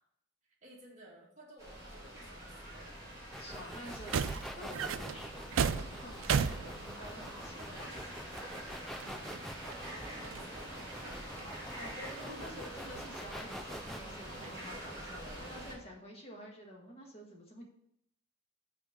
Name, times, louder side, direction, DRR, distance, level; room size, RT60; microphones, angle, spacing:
voice 1, 0.4-3.0 4.8-5.2 7.3-8.4 8.9-11.2 12.2-12.7 15.3-15.9, right 1 dB, 35° right, -3 dB, 2.0 m, -56 dB
sound 1, 1.6-15.7, right 1 dB, 15° right, 2.7 m, -46 dB
sound 2, 3.3-14.0, equal, ahead, 0.3 m, -47 dB
voice 2, 3.4-8.0 11.7-17.6, equal, 30° left, -1 dB, 1.7 m, -49 dB
sound 3, 3.5-3.6 3.9-7.4 8.4-8.5 9.0-10.4 10.8-12.5 12.9-13.1 14.2-14.7, right 6 dB, 75° right, 0.4 m, -36 dB
5.9 x 4.5 x 6.5 m, 0.74 s
head